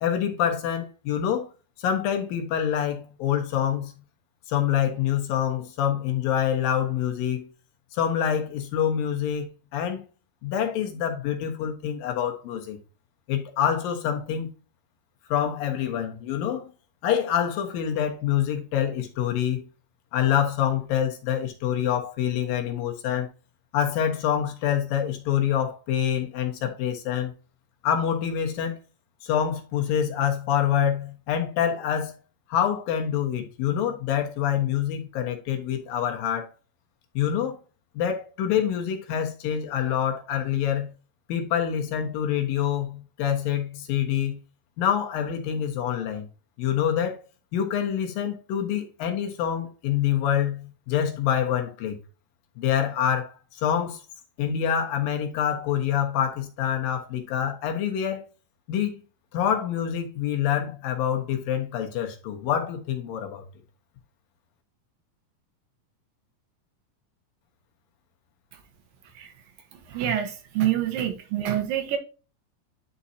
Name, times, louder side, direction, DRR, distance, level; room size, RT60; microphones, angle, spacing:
voice 1, 0.0-1.5 1.8-3.9 4.5-7.5 7.9-10.0 10.4-12.8 13.3-14.5 15.3-16.7 17.0-19.6 20.1-23.3 23.7-27.3 27.8-28.8 29.2-32.2 32.5-36.5 37.1-37.6 37.9-40.9 41.3-44.4 44.8-46.3 46.6-47.2 47.5-52.0 52.6-54.0 54.4-58.2 58.7-58.9 59.3-63.4, left 9 dB, 85° left, 3.1 m, -26 dB
voice 2, 69.9-72.0, right 11 dB, 85° right, 2.9 m, -26 dB
11.0 x 4.3 x 2.8 m
omnidirectional pair, 3.9 m